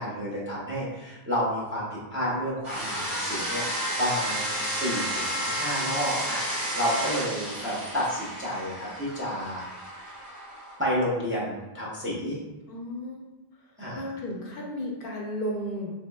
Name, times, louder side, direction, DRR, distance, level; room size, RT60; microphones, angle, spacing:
voice 1, 0.0-9.7 9.9-10.3 10.8-12.4 13.8-14.0, equal, 15° right, -6 dB, 0.5 m, -31 dB
sound 1, 2.6-10.8, equal, 30° right, 1.0 m, -32 dB
voice 2, 12.7-13.2 13.9-15.9, equal, 65° left, -2 dB, 0.8 m, -33 dB
3.5 x 3.1 x 2.2 m, 1.0 s
omnidirectional pair, 1.0 m